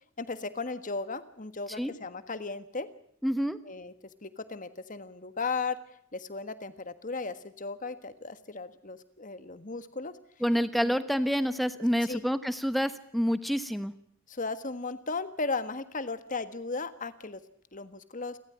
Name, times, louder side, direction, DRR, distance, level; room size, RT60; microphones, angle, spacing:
voice 1, 0.2-2.9 3.6-3.9 4.2-5.8 6.1-10.1 10.8-10.9 12.0-12.2 14.3-17.4 17.7-18.4, left 4 dB, 40° left, 12 dB, 1.6 m, -36 dB
voice 2, 3.2-3.6 10.4-13.9, equal, ahead, 12 dB, 1.1 m, -28 dB
29.5 x 13.5 x 9.2 m, 0.68 s
head